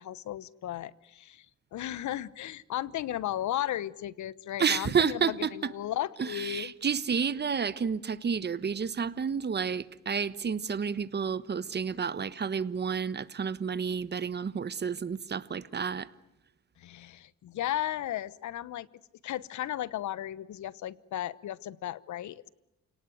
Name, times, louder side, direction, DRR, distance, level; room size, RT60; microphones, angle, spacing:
voice 1, 0.0-1.5 1.7-6.7 16.8-18.9 19.2-22.5, left 12 dB, 70° left, 1.1 m, -35 dB
voice 2, 4.6-5.7 6.2-16.1, right 6 dB, 35° right, 1.2 m, -30 dB
29.0 x 18.5 x 9.3 m
cardioid pair, 90°, 30 cm